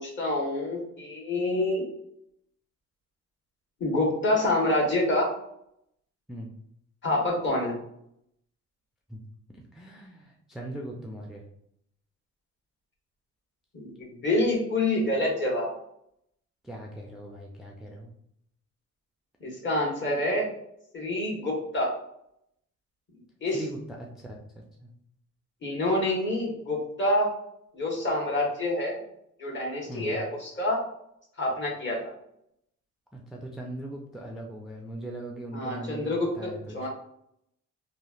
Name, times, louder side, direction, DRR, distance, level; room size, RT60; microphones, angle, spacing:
voice 1, 0.0-1.8 3.8-5.3 7.0-7.7 13.7-15.7 19.4-20.5 20.9-21.9 23.4-23.6 25.6-27.3 27.7-29.0 29.4-30.8 31.4-32.0 35.5-36.9, left 1 dB, 40° left, -2 dB, 1.2 m, -27 dB
voice 2, 9.7-11.4 16.6-18.1 23.5-24.9 29.9-30.2 33.1-36.9, right 1 dB, ahead, -2 dB, 0.4 m, -40 dB
3.1 x 2.4 x 2.3 m, 0.75 s
cardioid pair, 90°, 30 cm